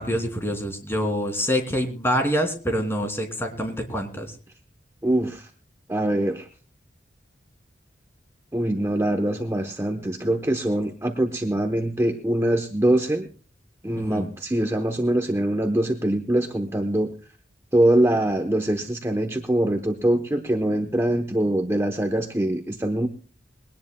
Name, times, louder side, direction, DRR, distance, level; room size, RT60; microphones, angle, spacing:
voice 1, 0.0-4.3 14.0-14.3, equal, 15° left, 4 dB, 2.7 m, -26 dB
voice 2, 5.0-5.5 5.9-6.5 8.5-13.3 13.8-17.1 17.7-23.1, right 1 dB, 15° right, 4 dB, 0.9 m, -23 dB
22.0 x 18.0 x 2.2 m, 0.37 s
head